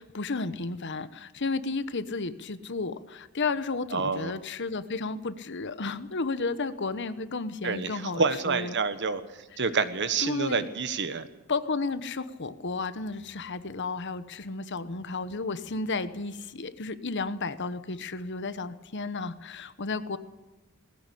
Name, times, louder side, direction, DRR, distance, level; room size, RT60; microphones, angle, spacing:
voice 1, 0.0-8.7 10.2-10.7 11.5-20.2, left 3 dB, 55° left, 13 dB, 1.1 m, -33 dB
voice 2, 3.9-4.3 7.6-9.2 9.6-11.3, right 4 dB, 55° right, 12 dB, 1.4 m, -28 dB
19.5 x 16.5 x 8.5 m, 1.1 s
head